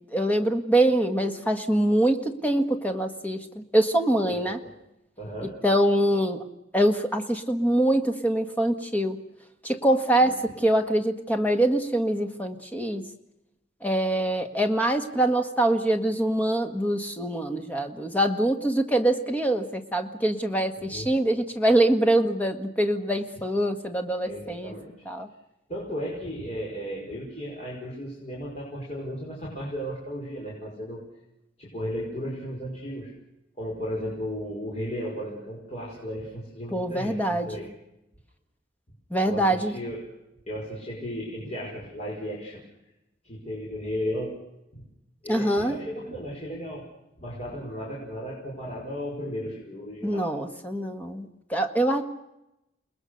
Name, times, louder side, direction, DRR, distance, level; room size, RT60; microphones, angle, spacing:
voice 1, 0.1-4.6 5.6-6.4 6.7-9.2 9.6-13.0 13.8-24.7 25.1-25.3 36.7-37.5 39.1-39.7 45.3-45.8 50.0-52.0, right 1 dB, 10° left, 5 dB, 1.7 m, -24 dB
voice 2, 4.3-4.7 5.2-5.6 10.2-10.5 20.8-21.1 24.3-24.9 25.7-31.0 31.6-33.1 33.6-37.7 39.2-40.0 40.5-42.6 43.2-44.4 44.7-44.8 45.2-46.9 47.2-50.2, equal, 35° left, -4 dB, 5.3 m, -35 dB
29.0 x 20.0 x 6.6 m, 0.89 s
head